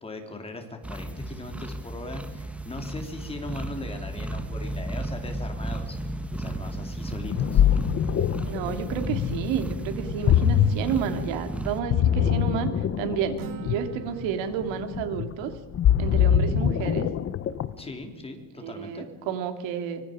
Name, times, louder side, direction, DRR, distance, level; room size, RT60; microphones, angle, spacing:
voice 1, 0.0-6.0 6.3-7.6 17.8-19.1, left 2 dB, 10° left, 4 dB, 3.0 m, -39 dB
sound 1, 0.8-11.8, right 1 dB, 5° right, 1.0 m, -34 dB
Ocean, 7.1-17.9, left 9 dB, 30° left, 0.7 m, -24 dB
voice 2, 8.4-12.7 13.0-15.5 16.0-17.1 18.6-20.0, right 8 dB, 75° right, 7 dB, 2.9 m, -31 dB
Acoustic guitar, 13.4-17.0, right 6 dB, 50° right, 1.3 m, -44 dB
25.0 x 23.0 x 5.1 m, 1.2 s
cardioid pair, 165°, 45 cm